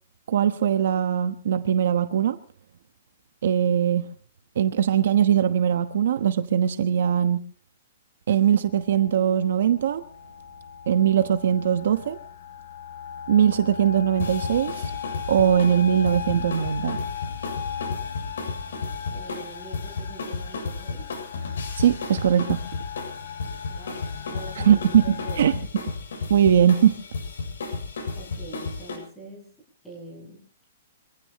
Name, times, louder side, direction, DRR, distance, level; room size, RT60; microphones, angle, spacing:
voice 1, 0.3-2.4 3.4-4.1 4.6-7.4 8.3-10.0 10.9-12.2 13.3-14.7 15.3-17.0 21.8-22.6 24.6-25.0 25.4-25.5 26.3-26.9, right 9 dB, 55° right, 9 dB, 1.1 m, -20 dB
sound 1, 8.4-25.5, left 7 dB, 55° left, 4.4 m, -38 dB
sound 2, 14.2-29.0, left 4 dB, 90° left, 7.4 m, -33 dB
voice 2, 19.1-21.1 23.7-25.9 28.1-29.5 29.8-30.4, right 1 dB, 5° left, -2 dB, 7.5 m, -44 dB
25.5 x 16.5 x 3.1 m, 0.43 s
hypercardioid pair, 180°, 0 cm